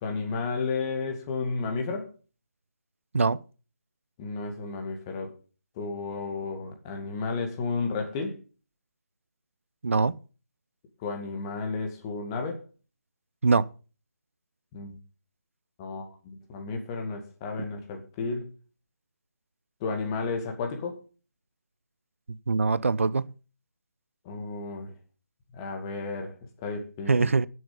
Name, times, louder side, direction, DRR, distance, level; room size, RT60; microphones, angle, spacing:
voice 1, 0.0-2.1 4.2-5.3 5.8-8.4 11.0-12.6 14.7-15.0 15.8-18.5 19.8-21.0 24.2-24.9 25.5-27.3, left 4 dB, 20° left, 2.2 m, -32 dB
voice 2, 9.8-10.2 13.4-13.7 22.3-23.3 27.1-27.5, right 4 dB, 55° right, 0.6 m, -23 dB
15.5 x 8.0 x 5.4 m
figure-of-eight pair, 150°, 8 cm